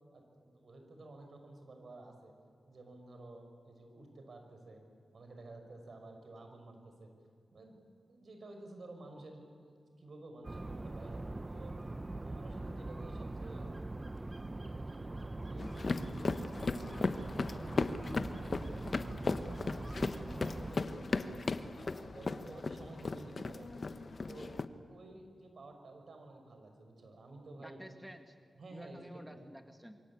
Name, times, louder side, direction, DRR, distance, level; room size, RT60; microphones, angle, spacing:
voice 1, 0.1-2.3 2.7-4.8 5.1-7.1 7.5-7.8 8.1-11.7 12.2-13.7 14.7-17.9 18.3-19.9 20.6-21.5 21.7-23.9 24.3-24.5 24.9-27.8 28.6-29.4, right 2 dB, 70° right, 4 dB, 5.7 m, -52 dB
sound 1, 10.4-20.7, right 2 dB, 30° right, 0.9 m, -42 dB
sound 2, 15.6-24.6, left 3 dB, 55° left, 1.3 m, -37 dB
voice 2, 27.6-28.4 28.7-30.0, equal, 5° right, 6 dB, 2.0 m, -51 dB
27.0 x 24.0 x 8.6 m, 2.1 s
cardioid pair, 50°, 0 cm